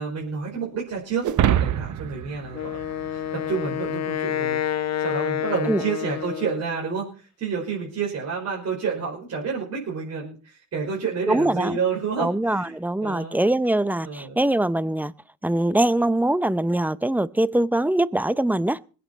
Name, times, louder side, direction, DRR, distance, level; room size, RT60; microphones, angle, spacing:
voice 1, 0.0-2.8 3.1-13.4 14.0-14.4, right 5 dB, 55° right, 5.4 m, -29 dB
sound 1, 1.2-3.8, right 11 dB, 75° right, 1.0 m, -25 dB
Wind instrument woodwind instrument, 2.5-6.8, left 11 dB, 60° left, 1.1 m, -28 dB
voice 2, 11.3-11.8 12.2-15.1 15.4-18.8, right 1 dB, 5° right, 0.7 m, -22 dB
21.0 x 8.6 x 4.5 m
cardioid pair, 90°, 30 cm